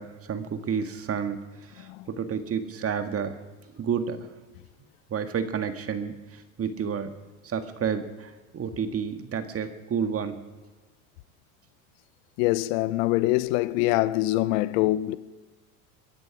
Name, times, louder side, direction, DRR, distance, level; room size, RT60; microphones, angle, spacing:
voice 1, 0.0-1.4 1.7-3.4 3.8-4.3 5.1-7.1 7.4-10.4, right 7 dB, 30° right, 1.8 m, -30 dB
voice 2, 12.4-15.2, left 17 dB, 65° left, 0.8 m, -24 dB
23.0 x 12.5 x 5.0 m
hypercardioid pair, 90°, 43 cm